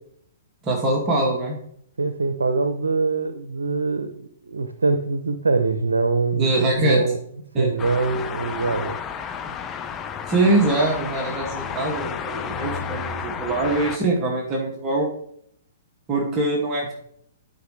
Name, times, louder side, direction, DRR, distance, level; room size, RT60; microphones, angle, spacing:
voice 1, 0.6-1.5 6.3-7.0 7.5-7.7 10.3-15.1 16.1-16.9, right 2 dB, 25° right, -1 dB, 2.2 m, -23 dB
voice 2, 2.0-7.2 7.6-9.0, right 3 dB, 90° right, 9 dB, 0.7 m, -23 dB
sound 1, 7.8-14.0, left 7 dB, 20° left, 0.8 m, -31 dB
11.5 x 5.3 x 3.3 m, 0.67 s
hypercardioid pair, 125°, 0 cm